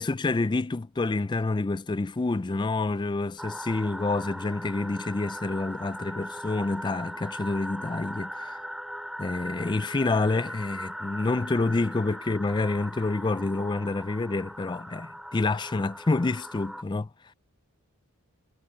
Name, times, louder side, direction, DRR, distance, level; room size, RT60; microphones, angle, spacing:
voice 1, 0.0-8.6 9.2-17.1, left 3 dB, 20° left, 0.4 m, -28 dB
sound 1, 3.4-16.8, equal, ahead, 3.2 m, -39 dB
head